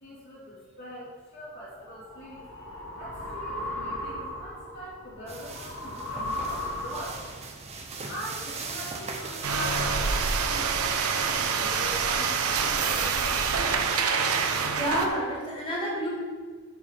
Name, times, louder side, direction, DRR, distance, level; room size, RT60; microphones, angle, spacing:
voice 1, 0.0-2.7 3.0-7.2 7.6-13.8, equal, 50° left, -8 dB, 2.4 m, -42 dB
sound 1, 1.6-7.4, left 1 dB, 80° left, 2.1 m, -36 dB
sound 2, 5.3-10.5, right 3 dB, 30° right, 0.7 m, -39 dB
sound 3, 9.4-15.1, right 5 dB, 85° right, 0.7 m, -26 dB
voice 2, 14.7-16.1, equal, 25° left, -6 dB, 2.4 m, -29 dB
7.3 x 4.5 x 5.6 m, 1.5 s
head